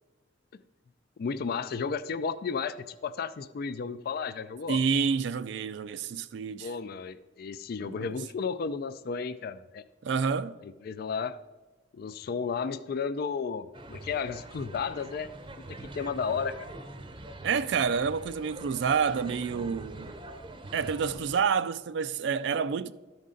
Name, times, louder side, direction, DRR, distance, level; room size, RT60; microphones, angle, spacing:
voice 1, 1.2-4.8 6.5-9.8 10.6-11.4 11.9-15.3 15.6-16.7, left 5 dB, 55° left, 0.3 m, -33 dB
voice 2, 4.7-6.7 7.8-8.1 10.0-10.6 17.4-20.1 20.7-22.9, right 6 dB, 65° right, 0.3 m, -28 dB
sound 1, 13.7-21.4, right 2 dB, 25° right, 0.7 m, -44 dB
13.0 x 5.3 x 3.7 m
head